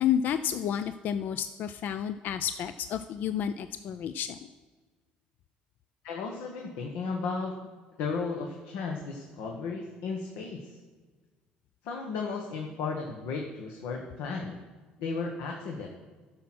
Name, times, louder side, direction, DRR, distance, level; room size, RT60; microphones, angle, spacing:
voice 1, 0.0-4.4, left 9 dB, 60° left, 11 dB, 0.4 m, -30 dB
voice 2, 6.0-7.5 8.0-10.7 11.8-14.6 15.0-15.9, left 4 dB, 80° left, 1 dB, 1.1 m, -34 dB
10.5 x 6.1 x 6.0 m, 1.4 s
supercardioid pair, 80°, 3 cm